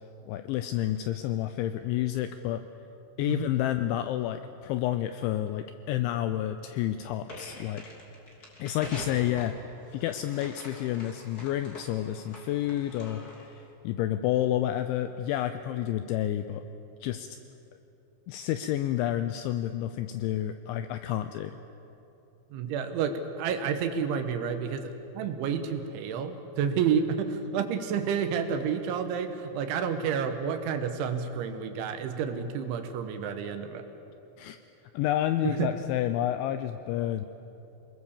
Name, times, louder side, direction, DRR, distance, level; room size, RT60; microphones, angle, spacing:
voice 1, 0.3-2.6 3.2-7.8 8.6-9.6 9.9-13.5 13.8-16.6 17.0-17.3 18.3-21.5 34.4-34.6 34.9-37.3, left 12 dB, 85° left, 9 dB, 2.7 m, -29 dB
sound 1, 7.3-13.6, left 1 dB, 25° left, 2.6 m, -45 dB
voice 2, 22.5-24.9 25.1-33.8 35.4-35.7, right 7 dB, 75° right, 7 dB, 3.3 m, -30 dB
27.0 x 21.0 x 7.2 m, 3.0 s
omnidirectional pair, 6.0 m